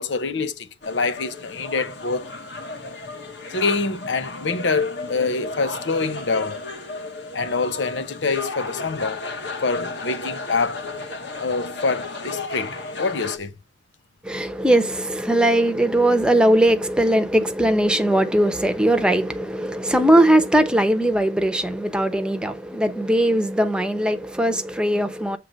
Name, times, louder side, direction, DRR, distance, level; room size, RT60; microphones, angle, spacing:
voice 1, 0.0-2.3 3.5-6.6 7.3-9.2 9.6-10.8 11.4-13.5, left 4 dB, 85° left, 0.8 m, -25 dB
sound 1, 0.8-13.4, left 3 dB, 70° left, 1.5 m, -33 dB
voice 2, 14.3-25.4, right 1 dB, 5° right, 0.8 m, -19 dB
7.6 x 3.3 x 5.2 m
head